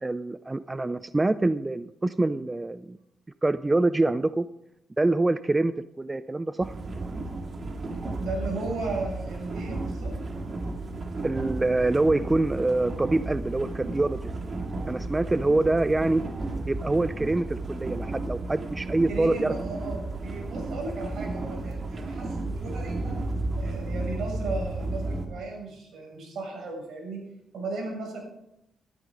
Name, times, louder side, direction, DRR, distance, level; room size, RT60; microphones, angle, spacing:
voice 1, 0.0-3.0 3.4-4.5 5.0-6.8 11.2-14.3 14.8-16.2 16.7-19.5, right 2 dB, 20° right, 13 dB, 0.4 m, -25 dB
sound 1, 6.6-25.3, right 2 dB, 40° right, 2.1 m, -33 dB
voice 2, 8.2-10.1 19.1-23.2 23.6-27.2 27.5-28.2, right 3 dB, 75° right, 0 dB, 6.8 m, -35 dB
15.5 x 12.5 x 3.8 m, 0.80 s
cardioid pair, 110°, 0 cm